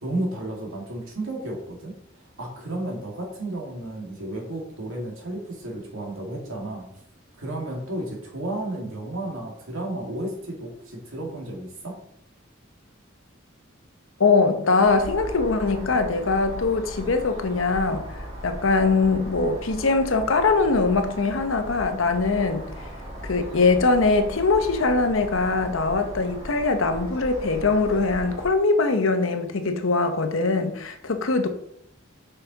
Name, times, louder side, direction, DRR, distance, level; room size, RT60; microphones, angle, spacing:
voice 1, 0.0-2.0 2.4-6.9 7.4-12.0, right 1 dB, 90° right, 2.1 m, -32 dB
voice 2, 14.2-18.0 18.4-22.7 23.2-31.5, left 3 dB, 75° left, 0.8 m, -22 dB
sound 1, 14.8-28.5, equal, 35° right, 1.9 m, -38 dB
5.8 x 5.8 x 4.0 m
head